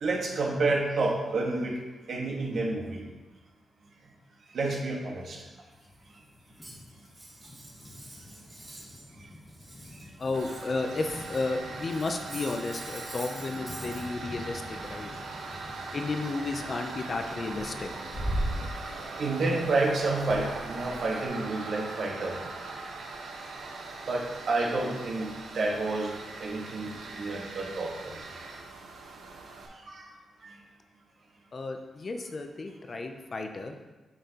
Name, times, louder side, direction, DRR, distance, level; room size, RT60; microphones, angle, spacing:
voice 1, 0.0-1.7 2.1-3.0 4.5-5.4 9.1-9.2 18.8-22.4 24.1-28.2 29.9-30.0 30.4-30.6, right 2 dB, 55° right, -1 dB, 1.4 m, -30 dB
sound 1, 5.7-21.3, equal, 15° left, 0.8 m, -42 dB
Cutlery silverware, 6.6-9.1 9.3-11.5 11.8-14.1, right 1 dB, 15° right, 2.1 m, -47 dB
voice 2, 10.2-15.1 15.9-17.9 31.5-33.8, left 3 dB, 35° left, 5 dB, 0.5 m, -33 dB
Tools, 10.3-29.7, right 3 dB, 90° right, 1.1 m, -41 dB
8.9 x 5.6 x 2.9 m, 1.2 s
wide cardioid pair, 150°, 0 cm